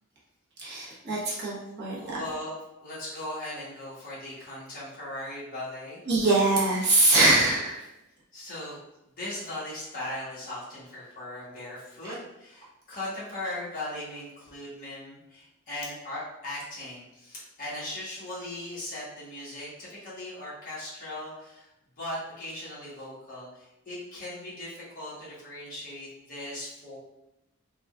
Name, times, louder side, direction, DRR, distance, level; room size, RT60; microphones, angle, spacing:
voice 1, 0.6-2.2 6.1-7.8, right 2 dB, 50° right, -6 dB, 0.9 m, -23 dB
voice 2, 2.0-2.6 2.8-6.0 8.3-8.8 9.2-21.7 22.0-27.0, left 1 dB, 40° left, -8 dB, 1.2 m, -38 dB
3.5 x 2.3 x 2.3 m, 0.91 s
head